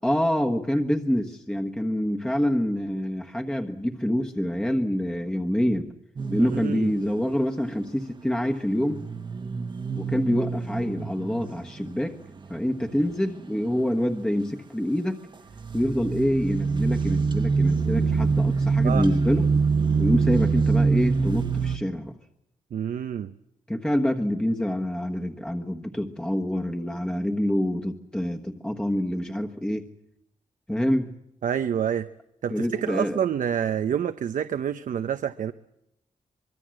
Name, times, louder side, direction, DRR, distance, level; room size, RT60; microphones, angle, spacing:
voice 1, 0.0-5.9 6.3-9.1 10.0-12.2 12.5-15.2 15.7-19.5 20.0-22.1 23.7-29.9 30.7-31.1 32.5-33.2, equal, 5° left, 3 dB, 1.3 m, -26 dB
sound 1, 6.2-7.1 8.6-13.2 13.5-14.0 15.5-21.8, right 4 dB, 35° right, 1.2 m, -25 dB
voice 2, 6.4-6.9 18.8-19.1 22.7-23.3 31.4-32.1 32.4-35.5, right 8 dB, 85° right, 10 dB, 0.8 m, -27 dB
24.5 x 23.0 x 7.7 m, 0.81 s
wide cardioid pair, 150°, 13 cm